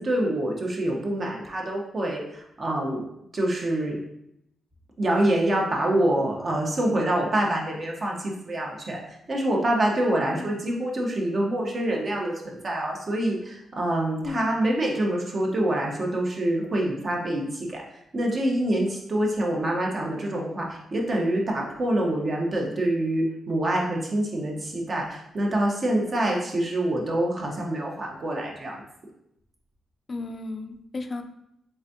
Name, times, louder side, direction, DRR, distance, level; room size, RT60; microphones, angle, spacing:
voice 1, 0.0-3.1 3.3-4.0 5.0-28.8, right 1 dB, 40° right, -1 dB, 1.0 m, -26 dB
voice 2, 30.1-31.2, left 3 dB, 35° left, 7 dB, 0.4 m, -34 dB
4.0 x 3.4 x 2.7 m, 0.78 s
cardioid pair, 110°, 0 cm